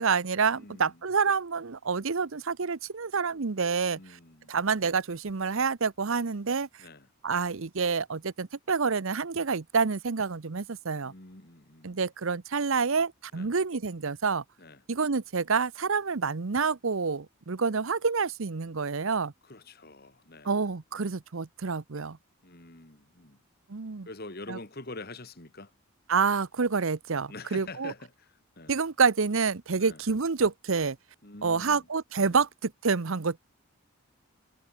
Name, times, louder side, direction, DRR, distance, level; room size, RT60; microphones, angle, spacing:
voice 1, 0.0-4.0 4.5-6.7 7.2-11.1 11.8-14.4 14.9-19.3 20.4-22.2 23.7-24.1 24.5-24.6 26.1-27.9 28.7-31.0 31.4-33.4, right 5 dB, 65° right, 0.8 m, -28 dB
voice 2, 0.5-1.0 3.9-4.5 6.8-7.1 11.0-12.0 13.3-13.5 14.6-14.8 19.4-20.6 20.9-21.1 22.4-23.4 24.1-25.7 27.3-28.8 29.8-30.0 31.2-31.9 32.3-32.4, left 2 dB, 45° left, 2.3 m, -45 dB
head